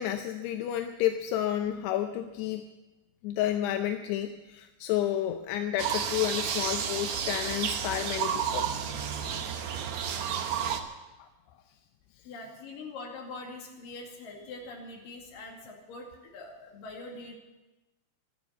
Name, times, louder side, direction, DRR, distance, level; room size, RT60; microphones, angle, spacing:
voice 1, 0.0-2.7 3.2-8.7, left 11 dB, 85° left, 6 dB, 2.8 m, -30 dB
sound 1, 5.8-10.8, right 8 dB, 85° right, 1.5 m, -31 dB
voice 2, 12.2-17.4, left 3 dB, 60° left, 0 dB, 3.8 m, -43 dB
13.0 x 12.0 x 8.1 m, 1.1 s
omnidirectional pair, 4.8 m